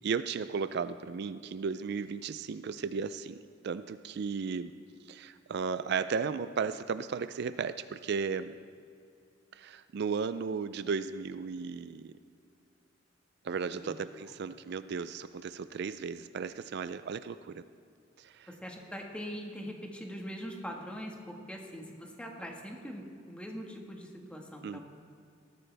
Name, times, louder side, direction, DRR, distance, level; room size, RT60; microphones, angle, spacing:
voice 1, 0.0-4.7 5.1-8.5 9.5-12.1 13.4-17.6 18.2-18.5 24.6-24.8, right 5 dB, 60° right, 13 dB, 0.4 m, -35 dB
voice 2, 18.5-24.8, equal, 5° left, 1 dB, 1.5 m, -42 dB
19.5 x 14.0 x 3.4 m, 2.4 s
head